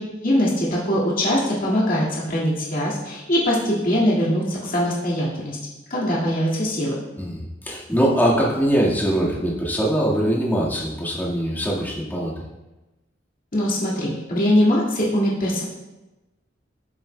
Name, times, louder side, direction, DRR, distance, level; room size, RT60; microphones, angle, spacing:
voice 1, 0.2-5.6 5.9-6.9 13.5-15.6, equal, 45° left, -6 dB, 2.0 m, -22 dB
voice 2, 7.2-12.3, equal, 10° left, -5 dB, 1.6 m, -22 dB
12.5 x 7.1 x 2.2 m, 1.1 s
head